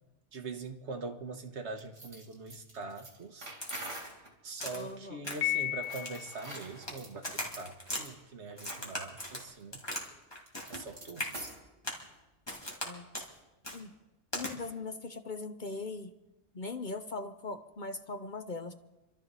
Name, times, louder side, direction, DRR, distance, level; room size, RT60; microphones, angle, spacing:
voice 1, 0.3-3.5 4.4-9.8 10.7-11.3, right 3 dB, 65° right, 6 dB, 1.5 m, -43 dB
sound 1, 1.8-4.3 5.7-7.1 7.9-8.1 8.6-8.9 9.2-9.3 9.6-11.7, right 2 dB, 85° right, 3.0 m, -46 dB
Crack, 3.6-4.1 4.6-4.9 5.2-5.6 5.9-7.0 7.2-8.0 8.6-10.1 10.3-10.9 11.2-11.3 11.8-12.1 12.5-12.9 13.1-13.3 13.6-13.8 14.3-14.5, left 1 dB, 20° left, 2.4 m, -39 dB
voice 2, 4.7-5.3 12.8-13.1 13.7-13.9 14.3-16.1 16.5-18.7, left 3 dB, 45° left, 8 dB, 0.8 m, -40 dB
Piano, 5.4-6.5, left 14 dB, 70° left, 1.2 m, -33 dB
28.5 x 12.5 x 4.1 m, 1.0 s
omnidirectional pair, 1.2 m